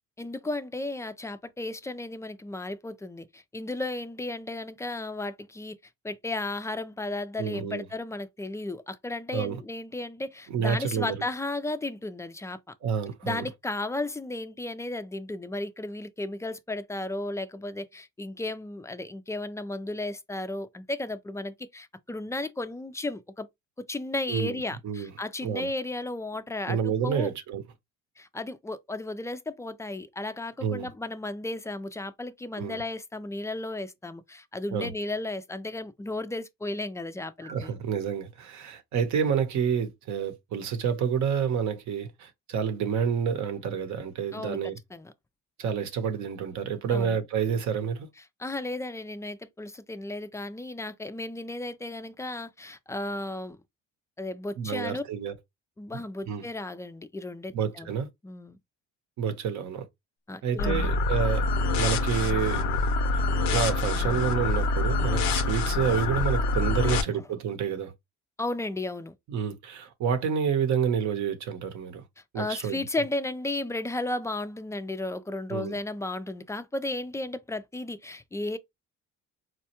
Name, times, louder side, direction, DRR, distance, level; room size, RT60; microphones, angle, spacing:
voice 1, 0.2-5.8 6.0-12.6 13.2-23.5 23.9-27.3 28.2-37.7 44.3-45.1 46.9-47.2 48.4-53.6 54.2-55.0 55.8-57.9 58.2-58.6 60.3-60.9 66.8-67.0 68.4-69.1 72.4-78.6, left 2 dB, 10° left, 0.3 m, -34 dB
voice 2, 7.4-7.8 9.3-9.6 10.5-11.1 12.8-13.4 24.3-24.6 24.8-25.1 25.4-25.7 26.7-27.6 30.6-30.9 32.6-32.8 34.7-34.9 37.4-44.8 45.6-48.1 54.6-55.3 56.3-56.5 57.5-58.1 59.2-59.9 60.4-61.5 61.8-62.6 63.1-63.2 63.5-67.9 69.3-72.0 72.3-72.8 75.5-75.8, right 7 dB, 60° right, 0.8 m, -29 dB
sound 1, 60.6-67.0, left 3 dB, 90° left, 0.6 m, -26 dB
4.2 x 2.2 x 2.8 m
supercardioid pair, 90°, 32 cm